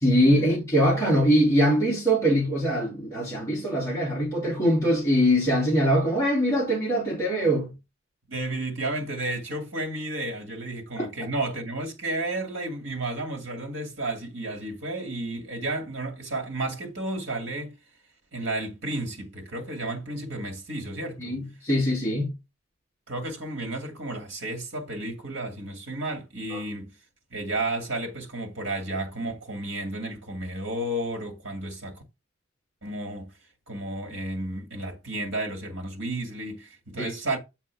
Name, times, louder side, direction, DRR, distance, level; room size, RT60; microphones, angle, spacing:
voice 1, 0.0-7.7 11.0-11.1 21.2-22.3 26.5-26.6 37.0-37.1, equal, 15° left, 2.8 m, -22 dB
voice 2, 8.3-17.7 18.3-21.4 23.1-26.9 27.3-32.0 32.8-33.3 33.7-37.4, right 2 dB, 60° right, 2.3 m, -32 dB
7.3 x 5.5 x 3.5 m
head